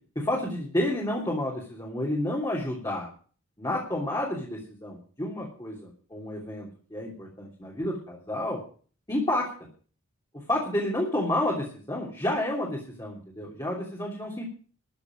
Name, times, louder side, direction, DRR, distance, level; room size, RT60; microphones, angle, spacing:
voice 1, 0.1-3.1 3.6-8.6 9.1-9.4 10.3-14.4, left 1 dB, 15° left, -3 dB, 3.2 m, -30 dB
13.5 x 6.8 x 9.5 m, 0.43 s
head